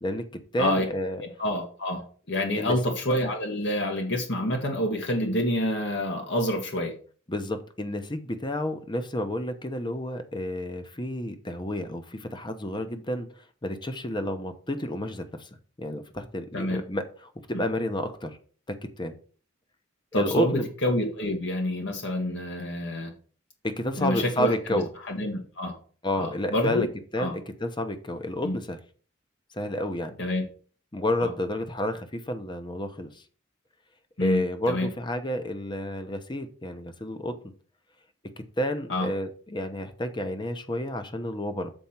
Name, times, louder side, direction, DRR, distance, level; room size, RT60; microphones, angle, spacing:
voice 1, 0.0-1.2 2.6-2.8 7.3-13.3 13.6-15.5 15.8-18.4 18.7-19.1 20.1-20.7 23.6-24.9 26.0-26.9 27.1-28.8 29.5-30.2 30.9-33.2 34.2-37.5 38.4-41.7, left 1 dB, 25° left, 8 dB, 0.9 m, -30 dB
voice 2, 1.2-6.9 16.5-16.8 20.1-23.1 24.0-24.8 25.1-25.8 26.2-26.9 27.2-27.3 28.4-28.6 30.2-30.4 31.2-31.3 34.2-34.9 38.9-39.1, left 1 dB, 60° left, 2 dB, 1.4 m, -27 dB
7.2 x 4.3 x 5.9 m, 0.42 s
head